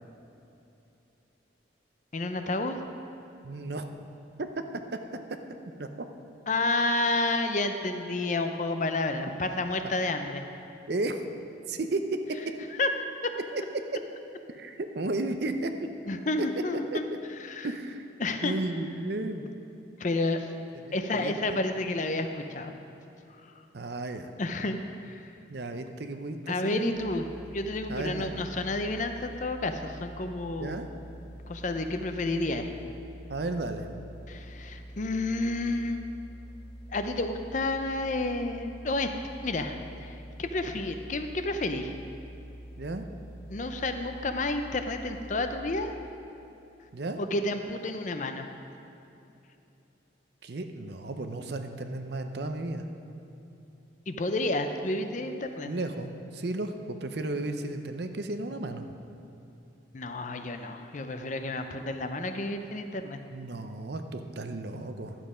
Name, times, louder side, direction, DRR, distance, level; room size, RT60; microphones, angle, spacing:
voice 1, 2.1-2.8 6.5-10.4 12.8-12.9 16.1-17.0 17.5-17.7 18.2-18.6 20.0-20.5 20.9-22.7 24.4-24.8 25.0-25.2 26.5-30.8 31.5-32.7 34.3-36.0 36.9-39.1 39.4-41.9 43.5-45.9 47.2-48.5 54.1-55.7 59.9-63.2, left 2 dB, 40° left, 7 dB, 0.5 m, -30 dB
voice 2, 3.4-3.9 4.9-5.2 5.8-5.9 10.9-11.2 11.7-12.0 13.5-14.0 14.6-15.7 16.4-16.5 16.9-17.0 17.6-18.1 18.4-19.5 20.8-21.6 23.7-24.3 25.5-26.9 27.9-28.4 30.6-30.9 33.3-33.9 42.8-43.0 46.9-47.2 50.4-52.9 55.7-58.8 63.3-65.2, right 2 dB, 55° right, 7 dB, 0.6 m, -34 dB
sound 1, 26.9-45.9, equal, 20° left, 1.5 m, -46 dB
11.5 x 7.4 x 5.0 m, 2.8 s
head